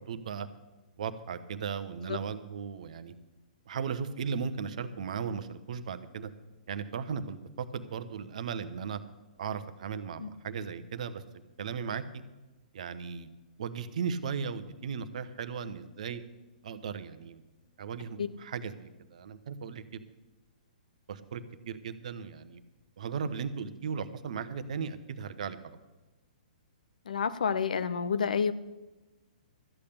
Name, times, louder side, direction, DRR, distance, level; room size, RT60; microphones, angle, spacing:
voice 1, 0.1-0.5 1.0-3.1 3.7-6.3 6.7-9.0 9.4-11.2 11.6-12.0 12.7-13.3 13.6-16.2 16.6-17.4 17.8-20.0 21.1-22.6 23.0-25.8, right 6 dB, 55° right, 10 dB, 0.9 m, -36 dB
voice 2, 27.1-28.5, left 6 dB, 65° left, 13 dB, 0.8 m, -29 dB
13.5 x 8.5 x 6.6 m, 1.1 s
figure-of-eight pair, 115°, 5 cm